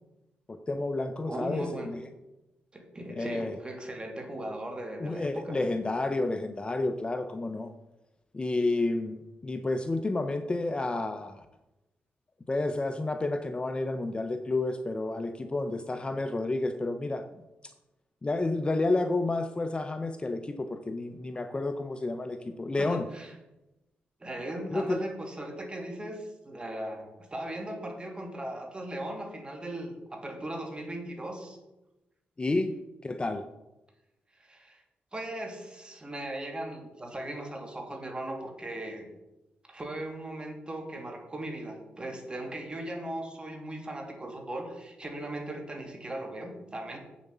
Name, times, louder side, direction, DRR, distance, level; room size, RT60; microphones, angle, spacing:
voice 1, 0.5-2.0 3.1-3.5 5.0-7.7 8.3-11.4 12.5-17.3 18.2-23.1 24.7-25.0 32.4-32.8 33.0-33.4, left 2 dB, 25° left, 8 dB, 0.7 m, -30 dB
voice 2, 1.3-1.9 2.7-5.6 22.8-23.3 24.2-31.6 34.3-34.8 35.1-39.1 39.7-47.0, right 1 dB, 25° right, 2 dB, 2.6 m, -38 dB
8.3 x 7.3 x 6.8 m, 0.97 s
cardioid pair, 85°, 4 cm